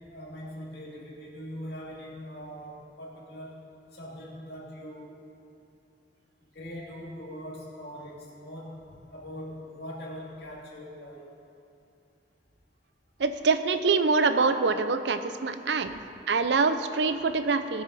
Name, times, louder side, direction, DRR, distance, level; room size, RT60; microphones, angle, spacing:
voice 1, 0.1-3.6 3.9-5.2 6.5-8.8 9.1-11.3, equal, 60° left, -4 dB, 2.5 m, -41 dB
voice 2, 13.2-16.0 16.3-17.8, right 4 dB, 80° right, 10 dB, 0.6 m, -25 dB
19.0 x 6.8 x 4.2 m, 2.6 s
head